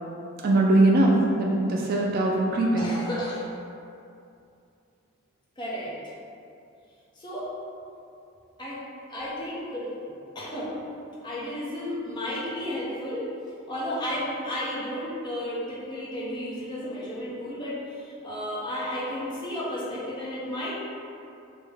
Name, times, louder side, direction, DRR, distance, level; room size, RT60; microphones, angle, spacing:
voice 1, 0.4-2.9, right 2 dB, 45° right, -2 dB, 0.3 m, -21 dB
voice 2, 2.8-3.5 5.6-5.9 7.2-7.5 8.6-8.8 9.1-9.9 10.3-10.7 11.2-13.3 13.7-20.7, left 1 dB, 20° left, -8 dB, 0.7 m, -33 dB
3.5 x 2.1 x 3.4 m, 2.6 s
head